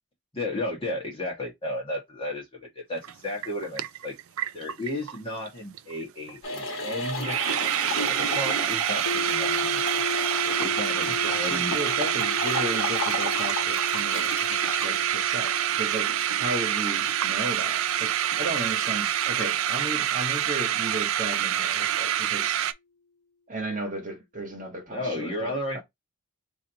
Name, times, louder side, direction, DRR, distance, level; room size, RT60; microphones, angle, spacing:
voice 1, 0.3-4.1 4.5-7.4 8.0-11.8 24.9-25.8, left 1 dB, 25° left, 1.5 m, -34 dB
sound 1, 3.0-3.1 3.4-5.2 5.5-5.6 5.7-6.0 6.3-6.4 6.8-6.9 7.0-22.7, right 11 dB, 65° right, 0.3 m, -27 dB
sound 2, 6.4-14.9, left 2 dB, 60° left, 1.3 m, -34 dB
sound 3, 9.1-21.0, left 4 dB, 85° left, 0.9 m, -38 dB
voice 2, 11.1-14.3 14.8-16.1 16.4-22.7 23.5-25.8, right 1 dB, 35° right, 1.3 m, -35 dB
3.2 x 2.8 x 4.0 m
head